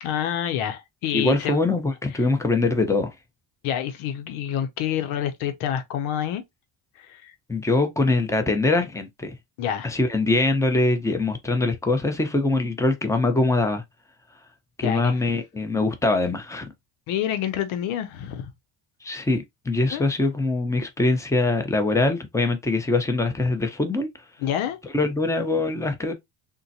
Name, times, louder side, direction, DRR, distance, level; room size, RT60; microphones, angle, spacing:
voice 1, 0.0-1.6 3.6-6.4 7.0-7.3 9.6-9.9 14.8-15.2 17.1-18.5 19.9-20.0 24.4-24.8, left 10 dB, 85° left, 0.7 m, -27 dB
voice 2, 1.1-3.1 7.5-9.3 9.8-13.8 14.8-16.7 19.0-24.1 24.9-26.1, left 2 dB, 5° left, 0.7 m, -23 dB
3.7 x 2.2 x 2.7 m
cardioid pair, 90°, 47 cm